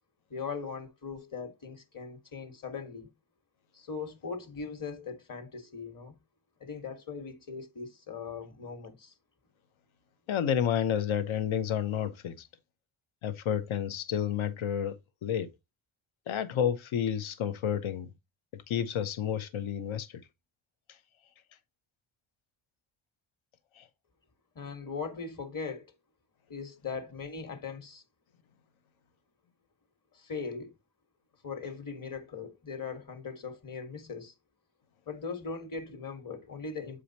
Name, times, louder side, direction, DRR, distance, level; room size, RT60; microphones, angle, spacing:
voice 1, 0.3-3.1 3.7-6.2 6.6-9.1 24.5-25.9 26.5-28.0 30.1-30.7 31.4-34.3 35.1-37.0, left 5 dB, 45° left, 1.5 m, -39 dB
voice 2, 10.3-12.5 13.2-15.5 16.3-18.1 18.5-20.2 23.8-23.9, left 9 dB, 85° left, 0.9 m, -30 dB
7.7 x 4.9 x 2.8 m
wide cardioid pair, 125°, 46 cm